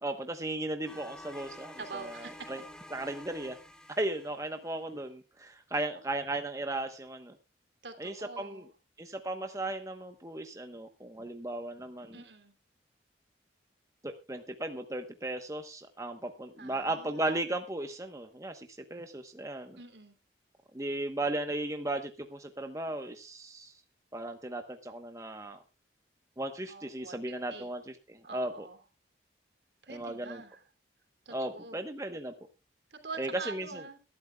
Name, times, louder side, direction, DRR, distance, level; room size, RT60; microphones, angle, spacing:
voice 1, 0.0-2.6 2.9-3.6 4.0-7.4 8.0-8.7 9.0-12.2 14.0-19.8 20.7-23.7 24.1-25.6 26.4-28.7 29.9-30.4 31.3-32.3 33.2-33.7, right 2 dB, 15° right, 6 dB, 1.0 m, -36 dB
sound 1, 0.9-4.8, left 1 dB, 5° left, 1.4 m, -49 dB
voice 2, 1.8-2.5 5.7-6.0 7.8-8.7 12.1-12.5 16.6-17.4 19.8-20.1 26.7-27.7 28.2-28.8 29.8-30.6 31.2-31.8 32.9-34.0, right 4 dB, 70° right, 6 dB, 2.9 m, -45 dB
22.0 x 12.0 x 2.3 m, 0.29 s
head